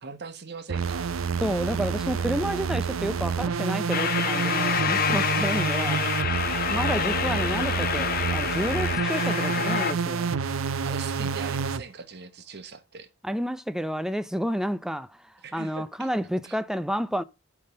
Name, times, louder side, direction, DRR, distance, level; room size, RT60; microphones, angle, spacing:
voice 1, 0.0-1.1 10.4-13.1 15.4-16.1 16.4-16.6, right 4 dB, 55° right, 1.1 m, -41 dB
sound 1, 0.7-11.8, right 5 dB, 85° right, 0.5 m, -28 dB
voice 2, 1.4-6.1 6.7-10.3 13.2-15.2 15.5-17.2, equal, 5° right, 0.5 m, -30 dB
sound 2, 3.9-9.9, left 8 dB, 50° left, 0.5 m, -27 dB
9.4 x 3.5 x 6.8 m
head